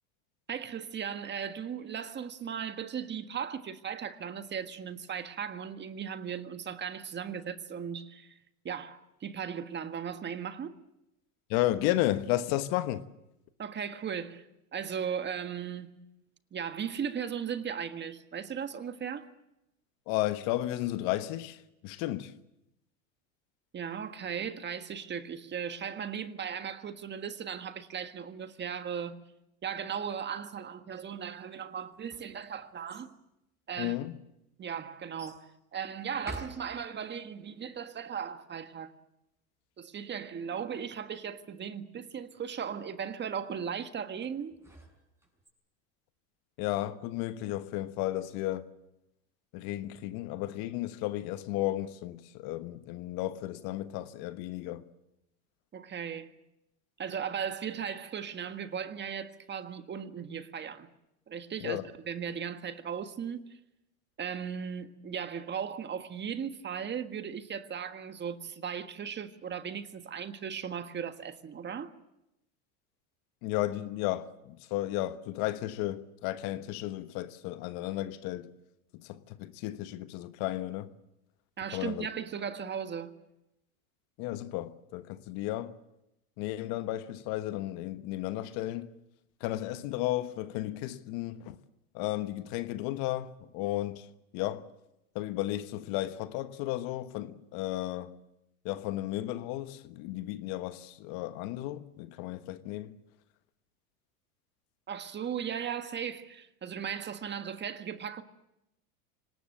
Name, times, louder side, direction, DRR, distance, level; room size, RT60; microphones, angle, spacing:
voice 1, 0.5-8.3 8.6-10.8 13.6-14.4 14.7-15.9 16.5-19.3 23.7-29.2 29.6-33.1 33.7-34.0 34.6-38.9 39.8-44.5 55.7-56.3 57.0-60.9 61.3-61.8 62.1-63.6 64.2-71.9 81.6-83.1 104.9-108.2, right 7 dB, 25° right, 1.6 m, -37 dB
voice 2, 11.5-13.0 20.1-22.3 33.8-34.2 46.6-48.7 49.5-54.9 61.6-61.9 73.4-78.5 78.9-80.9 81.7-82.1 84.2-85.8 86.4-88.9 89.4-91.6 91.9-94.7 95.1-98.2 98.6-103.0, left 15 dB, 55° left, 1.3 m, -33 dB
sound 1, 31.8-33.1 33.9-34.0 35.2-35.5 36.1-37.2 44.2-45.5, right 1 dB, 5° right, 6.7 m, -48 dB
25.0 x 19.5 x 7.9 m
hypercardioid pair, 105°, 42 cm